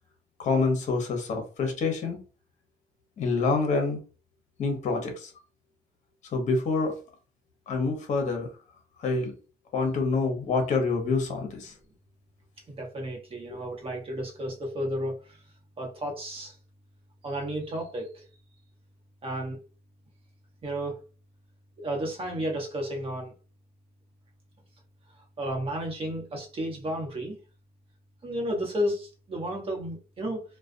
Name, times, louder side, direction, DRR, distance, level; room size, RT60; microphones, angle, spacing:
voice 1, 0.4-2.2 3.2-4.0 4.6-5.3 6.3-7.0 7.7-8.5 9.0-9.3 9.7-11.7, left 4 dB, 45° left, 0.8 m, -26 dB
voice 2, 12.7-15.2 15.8-16.5 17.2-18.2 19.2-19.6 20.6-21.0 21.8-23.3 25.4-27.4 28.2-30.4, equal, 35° right, 0.9 m, -32 dB
2.3 x 2.2 x 2.5 m
cardioid pair, 110°, 17 cm